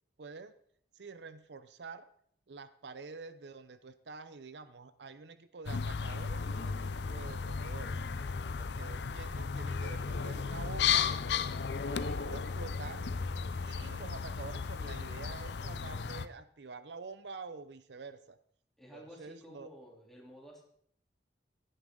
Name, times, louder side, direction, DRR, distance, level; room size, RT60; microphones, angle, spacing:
voice 1, 0.2-0.5 0.9-2.1 2.5-8.0 8.5-11.1 11.8-13.1 13.6-18.4 18.9-19.7, right 4 dB, 75° right, 13 dB, 0.6 m, -47 dB
sound 1, 5.7-16.3, left 6 dB, 70° left, 0.5 m, -35 dB
voice 2, 11.8-12.2 18.8-20.6, equal, ahead, -3 dB, 3.1 m, -52 dB
15.5 x 11.0 x 3.8 m, 0.65 s
head